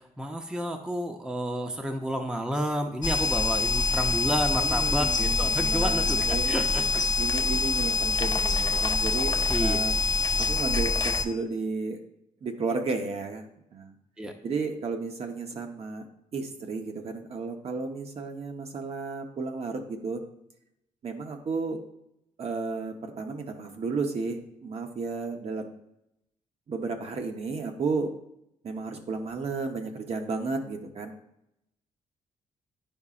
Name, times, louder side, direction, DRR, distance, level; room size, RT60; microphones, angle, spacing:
voice 1, 0.2-6.8 9.5-9.8 14.2-14.3, right 1 dB, 5° right, 4 dB, 0.6 m, -30 dB
sound 1, 3.0-11.3, left 3 dB, 30° left, 0.6 m, -25 dB
voice 2, 4.5-6.6 6.9-10.0 10.4-12.0 12.4-13.9 14.4-16.0 16.3-20.2 21.0-21.8 22.4-25.7 26.7-28.1 28.6-31.1, right 4 dB, 50° right, 4 dB, 0.9 m, -33 dB
9.7 x 5.4 x 2.5 m, 0.80 s
cardioid pair, 105°, 14 cm